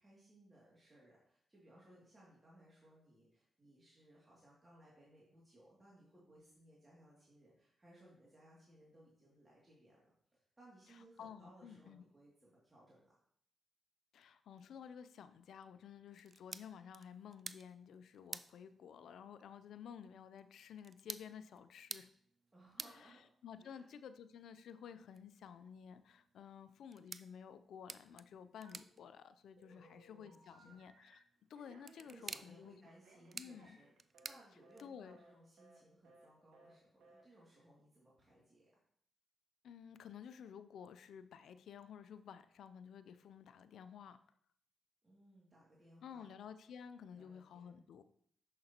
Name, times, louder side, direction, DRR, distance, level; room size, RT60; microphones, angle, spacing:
voice 1, 0.0-13.2 22.5-23.2 23.6-23.9 29.7-30.8 32.0-33.9 34.2-38.7 45.0-46.3 47.1-47.9, right 1 dB, 25° right, -6 dB, 2.4 m, -64 dB
voice 2, 11.2-12.0 14.1-22.1 22.9-31.2 31.5-32.8 33.3-33.8 34.8-35.2 39.6-44.2 46.0-48.0, left 7 dB, 80° left, 12 dB, 0.4 m, -53 dB
sound 1, 16.1-35.2, right 4 dB, 45° right, 0.3 m, -54 dB
Telephone, 28.6-29.2 29.6-31.2 31.5-34.4 34.6-34.8 35.1-35.3 35.6-35.8 36.0-36.3 36.5-36.7 37.0-37.2, right 2 dB, 85° right, 1.2 m, -64 dB
6.7 x 6.5 x 2.9 m, 0.65 s
supercardioid pair, 55°, 0 cm